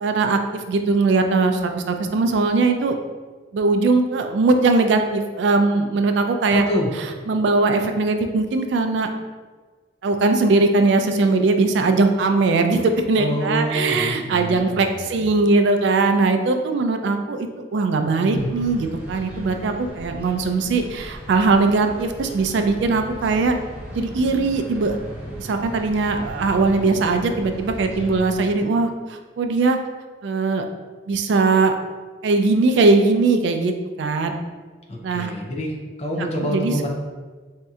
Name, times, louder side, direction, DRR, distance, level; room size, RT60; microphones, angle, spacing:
voice 1, 0.0-3.0 3.5-6.6 7.3-9.1 10.0-23.6 23.9-25.0 25.4-29.8 30.2-30.7 31.1-31.8 32.2-34.3 35.0-35.3 36.4-36.9, right 3 dB, 70° right, 6 dB, 0.3 m, -20 dB
voice 2, 6.5-6.9 13.2-15.3 18.2-18.5 34.9-35.7 36.0-36.9, equal, 35° left, 0 dB, 0.5 m, -26 dB
sound 1, 18.3-28.3, equal, 5° right, 0.7 m, -37 dB
4.1 x 2.7 x 2.3 m, 1.4 s
head